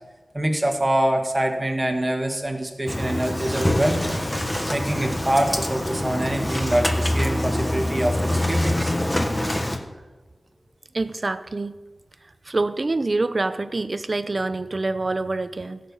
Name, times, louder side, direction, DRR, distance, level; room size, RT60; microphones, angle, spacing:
voice 1, 0.3-4.1 4.7-8.9, right 1 dB, 20° right, 3 dB, 1.8 m, -24 dB
Engine starting, 2.9-9.8, left 1 dB, 15° left, 1.3 m, -25 dB
voice 2, 10.9-11.7 12.5-15.8, right 2 dB, 40° right, 13 dB, 0.6 m, -26 dB
16.5 x 6.8 x 5.5 m, 1.2 s
wide cardioid pair, 90°, 0 cm